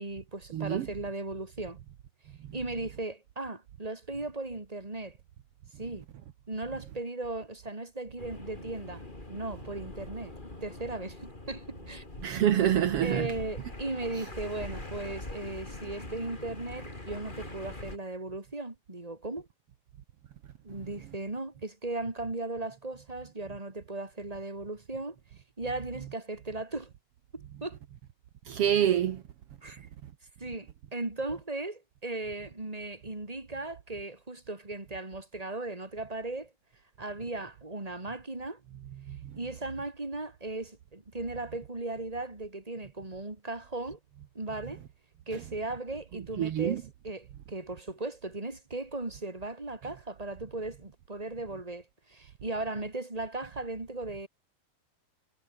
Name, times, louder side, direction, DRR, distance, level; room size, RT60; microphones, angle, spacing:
voice 1, 0.0-1.8 2.5-5.2 5.8-6.0 6.5-9.0 9.3-10.3 10.6-12.0 13.0-19.5 20.6-25.2 25.6-26.9 27.3-27.8 29.6-29.9 30.4-36.5 37.0-38.6 39.4-44.0 44.3-44.8 45.3-54.3, right 2 dB, 10° right, 3.4 m, -37 dB
voice 2, 0.5-0.9 12.2-13.3 28.5-29.2 39.1-39.3 46.4-46.8, right 10 dB, 75° right, 1.3 m, -26 dB
sound 1, 8.2-18.0, left 2 dB, 15° left, 3.7 m, -43 dB
omnidirectional pair, 4.3 m